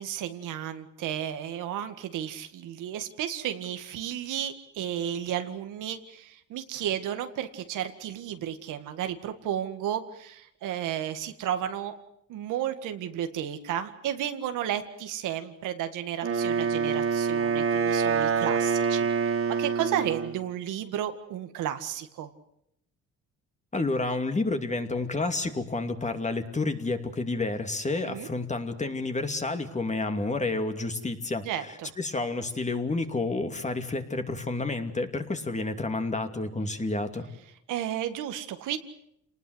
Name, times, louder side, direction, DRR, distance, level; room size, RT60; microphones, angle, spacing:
voice 1, 0.0-11.9 12.3-22.3 28.0-28.3 31.4-31.9 37.7-38.8, right 10 dB, 90° right, 8 dB, 1.9 m, -33 dB
Wind instrument woodwind instrument, 16.2-20.4, right 6 dB, 50° right, 3.1 m, -26 dB
voice 2, 23.7-31.4 32.0-37.3, left 3 dB, 25° left, 6 dB, 2.6 m, -30 dB
28.0 x 19.5 x 8.0 m, 0.76 s
cardioid pair, 90°, 30 cm